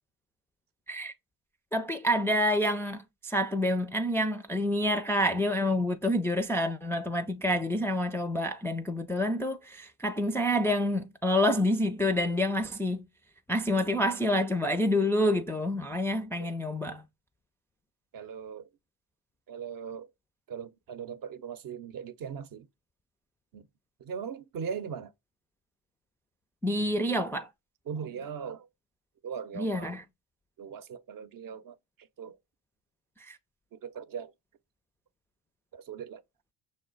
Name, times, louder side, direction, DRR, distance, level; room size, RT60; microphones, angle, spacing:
voice 1, 1.7-13.1 13.5-17.0 26.6-27.5 29.6-30.0 33.2-33.4, left 1 dB, 5° left, 0.3 m, -28 dB
voice 2, 18.1-18.7 19.5-20.1 20.5-22.7 23.5-23.6 24.0-25.1 27.9-28.7 29.2-29.9 30.6-31.7 32.2-32.4 33.7-34.3 35.7-36.2, right 7 dB, 50° right, 0.7 m, -39 dB
6.3 x 2.1 x 3.8 m
supercardioid pair, 70°, 42 cm